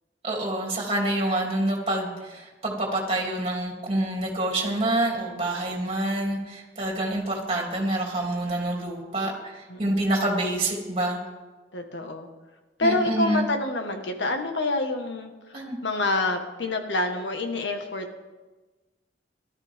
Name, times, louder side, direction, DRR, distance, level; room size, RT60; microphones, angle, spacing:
voice 1, 0.2-11.2 12.8-13.5 15.5-15.8, right 1 dB, 35° right, -1 dB, 3.0 m, -27 dB
voice 2, 9.7-10.1 11.7-12.3 12.8-15.3 15.8-18.2, left 2 dB, 85° left, 4 dB, 1.7 m, -27 dB
17.5 x 13.0 x 3.7 m, 1.2 s
head